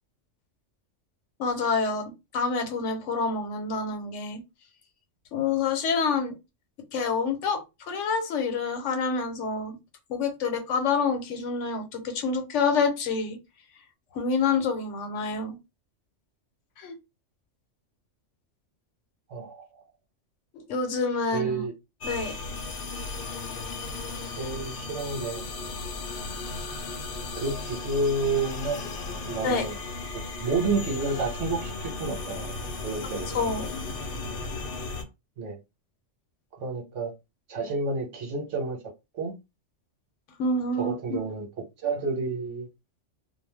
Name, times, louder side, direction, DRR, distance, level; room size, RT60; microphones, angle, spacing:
voice 1, 1.4-4.4 5.3-6.3 6.9-9.8 10.1-13.4 14.1-15.5 16.8-16.9 20.5-21.6 22.0-22.3 29.4-29.7 33.0-33.7 40.4-41.2, left 4 dB, 80° left, 1.0 m, -27 dB
voice 2, 19.3-19.7 21.3-21.7 24.4-25.5 27.3-28.9 29.3-29.8 30.4-32.5 32.8-33.4 35.4-35.6 36.6-37.1 37.5-38.8 39.1-39.3 40.8-41.5 41.8-42.7, right 3 dB, 85° right, 1.2 m, -30 dB
sound 1, 22.0-35.0, left 3 dB, 60° left, 0.7 m, -35 dB
2.4 x 2.2 x 3.3 m
omnidirectional pair, 1.2 m